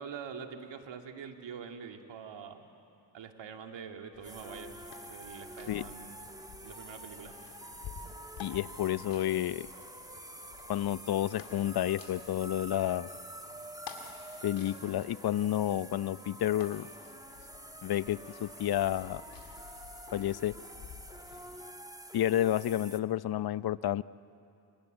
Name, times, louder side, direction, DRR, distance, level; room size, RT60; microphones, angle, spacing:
voice 1, 0.0-2.6 3.1-4.8 5.1-6.3 6.6-7.4, right 6 dB, 70° right, 4 dB, 2.5 m, -45 dB
sound 1, 4.1-21.7, left 7 dB, 75° left, 2.5 m, -52 dB
sound 2, 4.2-23.0, right 1 dB, 10° right, 1.5 m, -48 dB
voice 2, 8.4-9.7 10.7-13.1 14.4-16.9 17.8-19.2 20.1-20.5 22.1-24.0, left 12 dB, 55° left, 18 dB, 0.7 m, -30 dB
28.5 x 26.0 x 8.1 m, 2.6 s
supercardioid pair, 50°, 46 cm